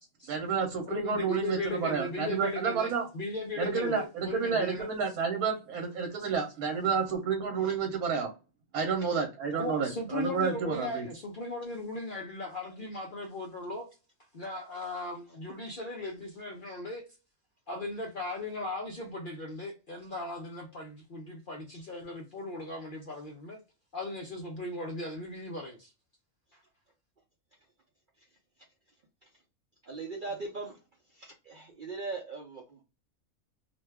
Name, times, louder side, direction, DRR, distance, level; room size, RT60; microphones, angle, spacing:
voice 1, 0.3-3.1 3.6-8.3 8.7-11.1, right 6 dB, 85° right, 1.2 m, -30 dB
voice 2, 0.9-4.9 9.5-13.9 14.3-17.0 17.7-23.6 23.9-25.9, left 2 dB, 60° left, 0.5 m, -37 dB
voice 3, 29.8-30.8 31.1-32.8, right 3 dB, 65° right, 0.5 m, -40 dB
2.6 x 2.2 x 3.3 m
omnidirectional pair, 1.5 m